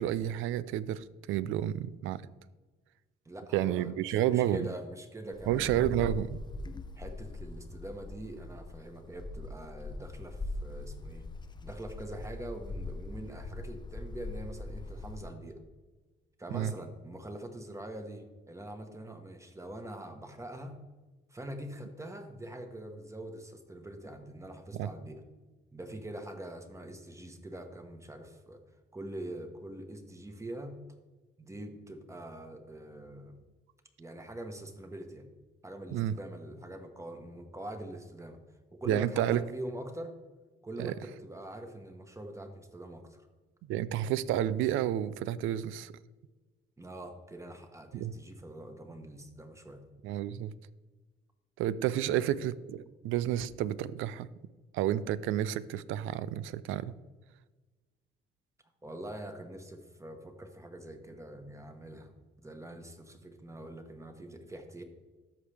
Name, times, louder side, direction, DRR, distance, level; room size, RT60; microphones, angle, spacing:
voice 1, 0.0-2.2 3.5-4.7 5.5-6.3 16.5-16.7 24.7-24.9 35.9-36.1 38.9-39.4 40.8-40.9 43.7-45.9 47.9-48.1 50.0-50.5 51.6-54.3 54.7-56.9, right 12 dB, 90° right, 18 dB, 0.4 m, -30 dB
voice 2, 3.2-6.2 7.0-11.3 11.6-15.6 16.4-20.8 21.3-25.2 25.7-28.6 28.9-30.8 31.4-33.4 34.0-35.3 35.6-38.4 38.7-40.1 40.6-43.3 46.8-49.8 52.1-52.3 58.8-64.8, right 1 dB, 15° right, 6 dB, 1.2 m, -44 dB
Wind, 5.3-15.3, left 3 dB, 20° left, 0.6 m, -41 dB
13.5 x 4.9 x 3.4 m, 1.3 s
cardioid pair, 90°, 20 cm